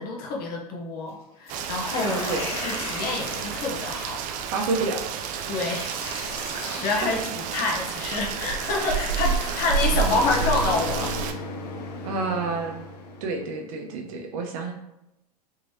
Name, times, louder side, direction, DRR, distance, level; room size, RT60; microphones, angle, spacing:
voice 1, 0.0-2.2 2.6-4.2 5.5-5.9 6.8-11.5, left 3 dB, 45° left, 0 dB, 1.0 m, -28 dB
sound 1, 1.5-4.0 5.5-7.3 8.3-8.4 8.9-11.3, left 2 dB, 30° left, 1.4 m, -37 dB
Rain, 1.5-11.3, right 6 dB, 40° right, 0.4 m, -30 dB
voice 2, 2.1-2.5 4.5-5.0 12.0-12.7 13.2-14.7, right 3 dB, 60° right, 2 dB, 0.8 m, -28 dB
sound 2, 8.0-13.5, left 2 dB, 70° left, 0.7 m, -36 dB
3.7 x 3.1 x 2.8 m, 0.89 s
hypercardioid pair, 105°, 21 cm